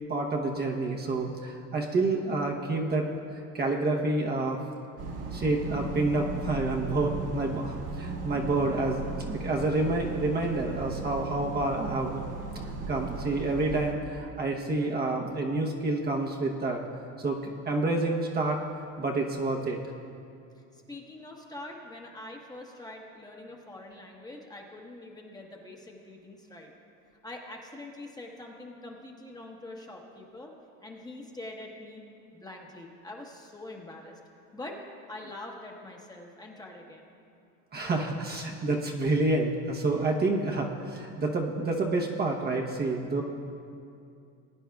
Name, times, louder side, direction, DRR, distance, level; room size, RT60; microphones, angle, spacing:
voice 1, 0.1-3.1 3.5-4.6 5.3-12.2 12.5-16.8 17.2-18.6 19.0-19.8 37.7-43.2, right 2 dB, 25° right, 0 dB, 1.0 m, -28 dB
sound 1, 5.0-13.9, right 3 dB, 55° right, 2.0 m, -36 dB
voice 2, 20.6-26.7 27.2-30.5 30.8-32.0 32.3-34.2 34.5-34.8 35.1-37.1, left 2 dB, 10° left, 0 dB, 1.2 m, -44 dB
20.5 x 9.8 x 2.3 m, 2.5 s
supercardioid pair, 125°, 37 cm